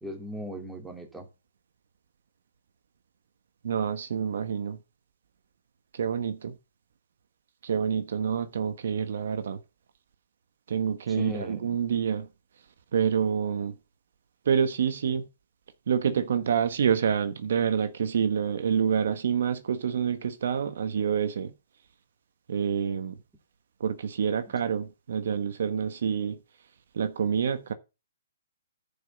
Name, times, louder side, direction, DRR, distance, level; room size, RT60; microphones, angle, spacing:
voice 1, 0.0-1.3 11.1-11.6, equal, 5° right, 2.5 m, -37 dB
voice 2, 3.6-4.8 5.9-6.5 7.6-9.6 10.7-12.3 12.9-13.7 14.4-15.2 15.9-21.5 22.5-23.2 23.8-26.4 26.9-27.7, right 7 dB, 65° right, 1.2 m, -27 dB
10.5 x 5.3 x 7.0 m
hypercardioid pair, 155°, 0 cm